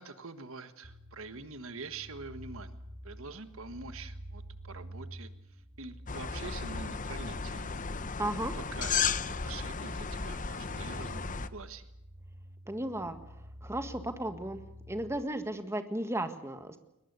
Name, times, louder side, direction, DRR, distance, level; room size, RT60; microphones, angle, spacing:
voice 1, 0.0-2.7 3.0-5.3 5.8-7.8 8.8-11.2 11.5-11.9, right 4 dB, 60° right, 11 dB, 1.5 m, -45 dB
sound 1, 0.8-15.2, equal, 45° right, 3.0 m, -48 dB
sound 2, 6.1-11.5, left 6 dB, 35° left, 0.9 m, -34 dB
voice 2, 8.2-8.5 12.7-13.2 13.6-16.8, right 1 dB, 10° right, 8 dB, 1.6 m, -35 dB
22.0 x 21.0 x 8.2 m, 0.87 s
head